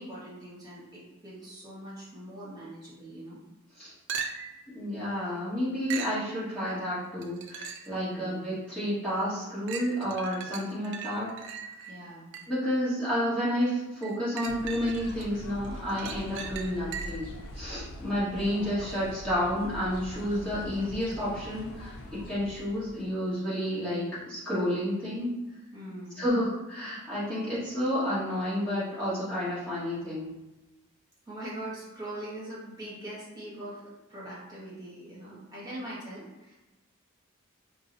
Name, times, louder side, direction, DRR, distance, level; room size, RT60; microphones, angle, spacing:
voice 1, 0.0-3.4 7.9-8.4 11.9-12.3 18.4-18.7 25.7-26.2 31.2-36.5, right 1 dB, 20° right, -8 dB, 1.5 m, -42 dB
sound 1, 4.1-4.7 5.9-6.2 7.2-8.0 8.5-8.6 9.7-12.7 14.0-15.3 15.6-17.3 21.1-21.2, right 6 dB, 60° right, 0.4 m, -39 dB
voice 2, 4.7-11.3 12.5-21.9 22.3-25.3 26.2-30.3, equal, 5° left, -12 dB, 1.5 m, -30 dB
sound 2, 14.5-23.1, equal, 75° left, 0.5 m, -43 dB
5.1 x 2.3 x 2.6 m, 1.1 s
head